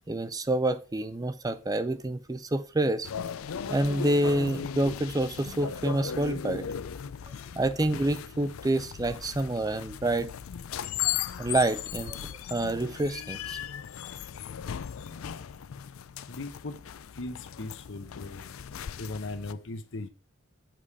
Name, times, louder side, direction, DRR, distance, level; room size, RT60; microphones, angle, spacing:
voice 1, 0.1-3.1 3.7-6.6 7.5-10.3 11.4-12.2 12.5-13.6, right 1 dB, 20° right, 0.5 m, -28 dB
sound 1, 3.0-19.5, left 8 dB, 80° left, 0.4 m, -37 dB
voice 2, 16.3-16.8 17.2-18.4 19.0-20.1, left 2 dB, 65° left, 0.9 m, -38 dB
7.7 x 4.9 x 4.8 m
head